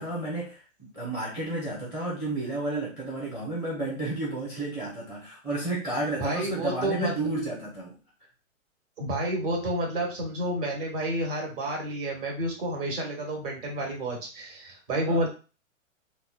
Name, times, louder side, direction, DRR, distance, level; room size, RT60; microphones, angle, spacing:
voice 1, 0.0-8.0 15.1-15.3, right 2 dB, 10° right, -4 dB, 0.7 m, -32 dB
voice 2, 6.2-7.1 9.0-15.3, right 1 dB, 40° right, 0 dB, 1.4 m, -30 dB
3.9 x 2.2 x 2.3 m, 0.34 s
figure-of-eight pair, 120°, 40 cm